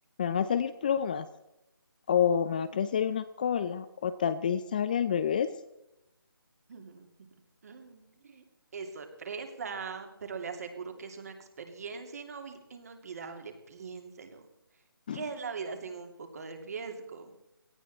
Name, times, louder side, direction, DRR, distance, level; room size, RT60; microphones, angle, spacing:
voice 1, 0.2-1.3 2.1-5.5 15.1-15.2, left 8 dB, 20° left, 13 dB, 0.5 m, -28 dB
voice 2, 6.7-7.1 7.6-8.4 8.7-14.4 15.1-17.3, right 5 dB, 45° right, 5 dB, 2.8 m, -41 dB
18.0 x 15.0 x 4.3 m, 0.89 s
figure-of-eight pair, 160°, 12 cm